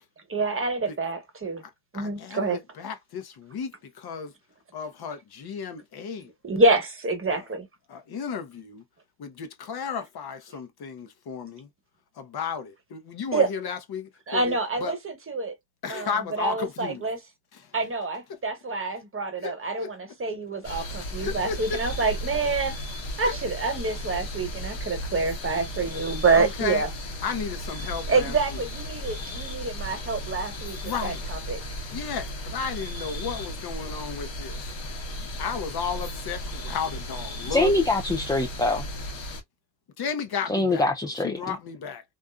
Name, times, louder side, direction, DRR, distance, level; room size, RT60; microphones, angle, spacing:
voice 1, 0.3-1.6 1.9-2.6 6.4-7.7 13.3-13.5 14.3-15.5 15.9-16.1 16.4-17.2 17.7-22.7 23.2-26.9 28.1-31.6, right 3 dB, 30° right, 1.0 m, -27 dB
voice 2, 1.9-4.3 4.7-6.3 7.3-7.5 7.9-8.8 9.2-11.7 12.2-15.0 15.8-17.0 19.4-19.9 21.2-21.8 23.2-23.4 26.3-26.8 27.2-28.6 30.8-31.2 31.9-34.7 35.4-37.7 40.0-40.9 41.1-42.0, left 6 dB, 55° left, 0.7 m, -33 dB
sound 1, 20.6-39.4, equal, 80° left, 1.1 m, -35 dB
voice 3, 37.5-38.9 40.5-41.6, left 2 dB, 10° left, 0.3 m, -24 dB
2.5 x 2.4 x 2.2 m
supercardioid pair, 65°, 44 cm